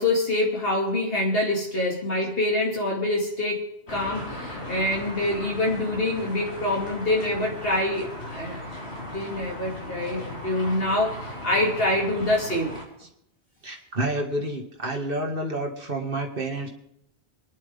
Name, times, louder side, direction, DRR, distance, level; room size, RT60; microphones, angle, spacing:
voice 1, 0.0-8.6 9.1-12.7, left 1 dB, 65° left, -2 dB, 2.7 m, -26 dB
sound 1, 3.9-12.8, left 1 dB, 85° left, 4.4 m, -37 dB
voice 2, 13.6-16.7, right 1 dB, 60° right, 2 dB, 2.1 m, -29 dB
25.5 x 10.5 x 3.6 m, 0.76 s
omnidirectional pair, 1.1 m